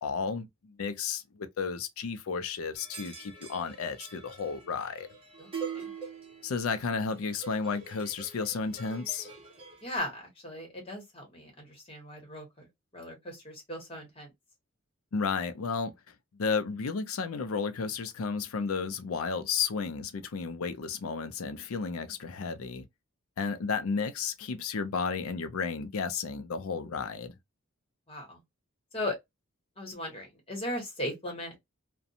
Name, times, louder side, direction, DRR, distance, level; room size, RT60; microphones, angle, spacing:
voice 1, 0.0-5.1 6.4-9.3 15.1-15.9 16.4-22.9 23.4-27.3, left 5 dB, 90° left, 0.5 m, -33 dB
sound 1, 2.7-10.0, right 6 dB, 25° right, 0.8 m, -44 dB
voice 2, 9.8-12.7 12.9-14.3 28.1-28.4 28.9-29.2 29.8-31.6, left 1 dB, 25° left, 1.2 m, -37 dB
2.5 x 2.2 x 2.7 m
head